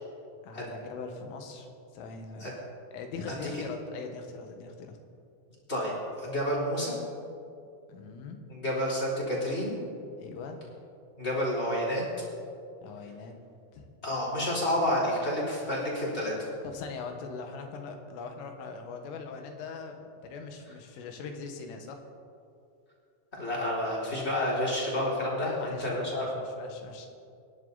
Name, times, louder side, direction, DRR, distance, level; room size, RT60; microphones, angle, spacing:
voice 1, 0.4-1.7 1.9-2.5 2.9-5.0 7.9-8.4 10.2-10.6 12.8-13.4 13.7-13.9 16.6-22.0 25.4-27.1, left 4 dB, 80° left, 4 dB, 4.0 m, -41 dB
voice 2, 5.7-7.0 8.5-9.8 11.2-12.0 14.0-16.5 23.3-26.3, left 1 dB, 15° left, -5 dB, 3.4 m, -30 dB
26.5 x 11.5 x 4.1 m, 2.5 s
omnidirectional pair, 5.7 m